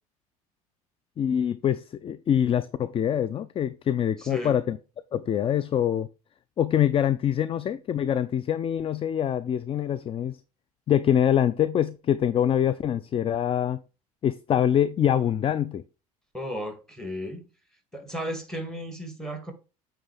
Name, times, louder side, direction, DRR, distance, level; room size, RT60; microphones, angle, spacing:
voice 1, 1.2-4.8 5.1-6.1 6.6-10.4 10.9-13.8 14.2-15.8, left 9 dB, 30° left, 0.4 m, -24 dB
voice 2, 4.2-4.5 16.3-17.4 17.9-19.5, equal, 5° left, 2.2 m, -34 dB
8.8 x 3.6 x 4.9 m
hypercardioid pair, 65°, 19 cm